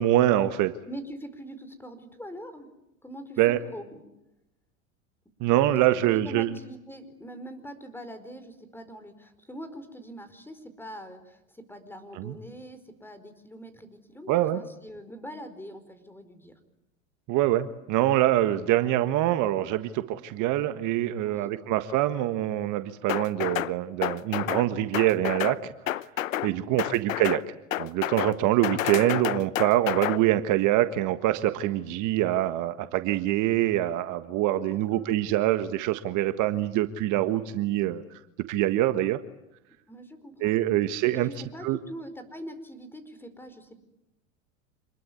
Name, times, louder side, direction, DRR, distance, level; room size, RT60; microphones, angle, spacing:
voice 1, 0.0-0.7 3.4-3.6 5.4-6.5 12.1-12.3 14.3-14.6 17.3-26.0 26.4-27.4 27.8-38.0 38.5-39.2 40.4-41.3 41.6-41.8, right 14 dB, 50° right, 10 dB, 1.6 m, -25 dB
voice 2, 0.9-2.7 3.0-4.0 5.7-5.8 6.2-16.6 21.2-21.5 26.4-26.8 34.7-35.1 39.9-40.6 41.1-43.8, equal, 5° left, 9 dB, 4.8 m, -43 dB
sound 1, 23.1-23.7 24.0-24.7 24.9-25.6 25.9-26.5 26.8-27.4 27.7-28.3 28.6-30.2, left 13 dB, 85° left, 0.9 m, -29 dB
27.5 x 21.5 x 9.5 m, 0.87 s
hypercardioid pair, 100°, 39 cm